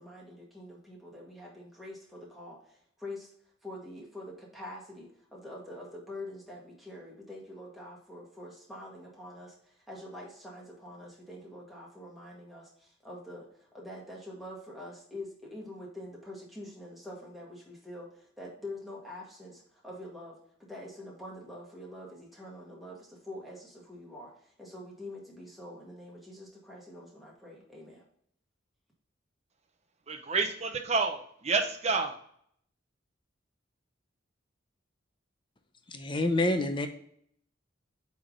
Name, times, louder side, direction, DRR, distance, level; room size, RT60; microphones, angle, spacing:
voice 1, 0.0-3.3 3.6-20.4 20.7-28.0, left 1 dB, ahead, -4 dB, 1.8 m, -45 dB
voice 2, 30.1-32.1, right 4 dB, 35° right, 5 dB, 0.8 m, -29 dB
voice 3, 35.9-36.9, left 1 dB, 25° left, 7 dB, 0.7 m, -27 dB
8.6 x 3.6 x 3.8 m, 0.66 s
head